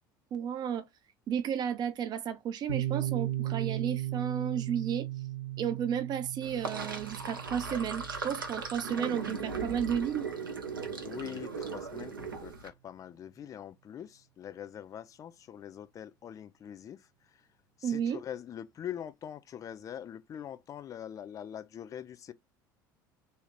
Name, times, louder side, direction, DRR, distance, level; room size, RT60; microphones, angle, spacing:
voice 1, 0.3-0.9 1.3-5.1 5.6-10.3 17.8-18.2, right 8 dB, 40° right, 0.6 m, -33 dB
Piano, 2.7-10.1, right 13 dB, 85° left, 0.8 m, -37 dB
Sink (filling or washing), 6.4-12.7, right 4 dB, 85° right, 0.6 m, -38 dB
voice 2, 11.0-17.1 17.3-17.5 17.8-22.3, left 9 dB, 30° left, 0.4 m, -43 dB
2.8 x 2.4 x 3.1 m
figure-of-eight pair, 65°, 11 cm